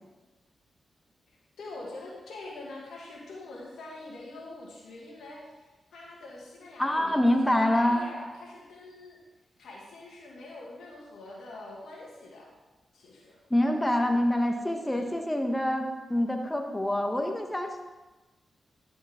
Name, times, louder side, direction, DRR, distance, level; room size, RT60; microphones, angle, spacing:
voice 1, 1.6-5.6 5.9-9.2 9.6-12.5 12.9-13.4 14.7-15.1, left 2 dB, 85° left, -3 dB, 2.0 m, -44 dB
voice 2, 6.8-8.1 13.5-17.7, left 1 dB, 15° left, 3 dB, 1.1 m, -26 dB
12.5 x 5.2 x 3.6 m, 1.2 s
supercardioid pair, 50°, 0 cm